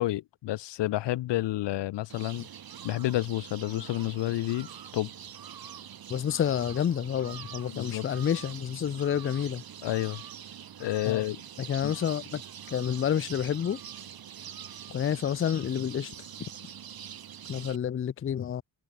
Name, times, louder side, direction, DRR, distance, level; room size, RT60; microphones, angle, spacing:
voice 1, 0.0-2.5 2.8-4.7 4.9-5.1 7.7-8.1 9.8-10.2 10.8-11.4 11.8-11.9, left 15 dB, 70° left, 0.6 m, -30 dB
sound 1, 2.1-17.8, right 9 dB, 55° right, 3.3 m, -44 dB
voice 2, 6.1-9.6 11.1-11.2 11.6-12.4 12.7-13.8 14.9-16.1 17.5-18.6, left 9 dB, 30° left, 0.5 m, -29 dB
wide cardioid pair, 165°, 43 cm